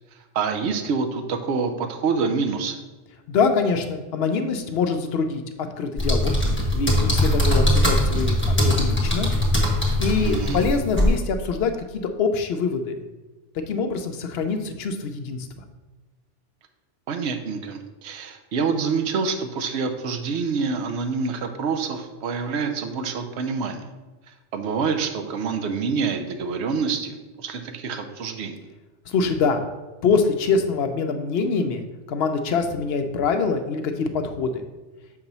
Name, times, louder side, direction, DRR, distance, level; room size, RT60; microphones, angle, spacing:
voice 1, 0.3-2.8 10.2-10.7 17.1-23.9 24.5-28.6, right 5 dB, 70° right, 7 dB, 0.9 m, -26 dB
voice 2, 3.3-6.3 6.7-9.3 10.0-11.7 12.2-13.0 13.5-15.5 29.1-29.6 30.0-34.6, left 5 dB, 65° left, 6 dB, 0.8 m, -24 dB
sound 1, 6.0-11.2, left 1 dB, 10° left, 1.1 m, -21 dB
6.7 x 2.9 x 5.3 m, 1.2 s
omnidirectional pair, 1.2 m